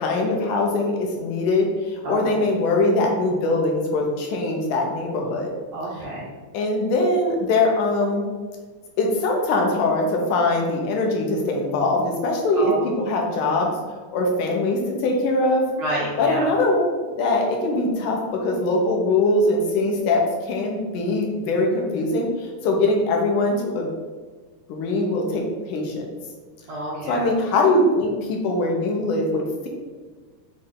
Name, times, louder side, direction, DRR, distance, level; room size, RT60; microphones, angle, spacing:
voice 1, 0.0-5.5 6.5-8.2 9.0-13.8 14.1-15.6 16.2-16.8 17.2-23.9 24.7-26.1 27.0-29.7, left 2 dB, 80° left, 0 dB, 2.4 m, -22 dB
voice 2, 2.0-2.4 5.7-6.3 12.6-12.9 15.8-16.5 26.7-27.3, right 1 dB, 65° right, -6 dB, 1.3 m, -29 dB
7.7 x 3.3 x 3.8 m, 1.4 s
omnidirectional pair, 3.7 m